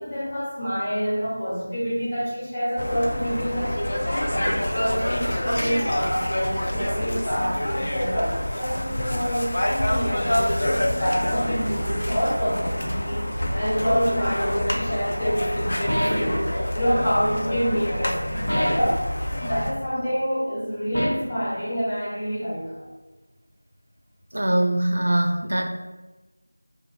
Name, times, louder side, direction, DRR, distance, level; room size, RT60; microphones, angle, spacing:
voice 1, 0.0-4.4 4.7-13.3 13.5-16.5 16.7-19.1 19.4-22.9, equal, 15° left, -9 dB, 0.7 m, -27 dB
sound 1, 2.8-19.7, equal, 50° left, 0.4 m, -27 dB
sound 2, 15.9-16.5 18.5-19.0 20.9-21.4, equal, 70° left, 0.8 m, -25 dB
voice 2, 24.3-25.7, right 1 dB, 65° right, 3 dB, 0.4 m, -22 dB
2.1 x 2.0 x 3.0 m, 1.1 s
figure-of-eight pair, 175°, 0 cm